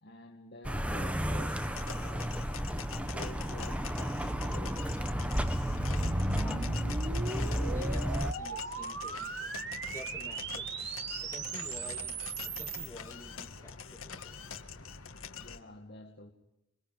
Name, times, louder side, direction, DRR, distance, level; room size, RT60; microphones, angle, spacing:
voice 1, 0.0-4.9 15.4-16.3, left 2 dB, 55° left, 2 dB, 2.1 m, -50 dB
sound 1, 0.6-8.3, equal, 5° right, 1.1 m, -32 dB
sound 2, 1.4-15.6, left 6 dB, 90° left, 1.9 m, -45 dB
sound 3, 3.0-12.9, right 4 dB, 55° right, 2.1 m, -40 dB
voice 2, 6.3-7.4 7.7-9.6 9.9-12.1 12.4-14.4, left 1 dB, 15° left, 3 dB, 2.6 m, -50 dB
27.0 x 24.0 x 9.1 m, 0.88 s
head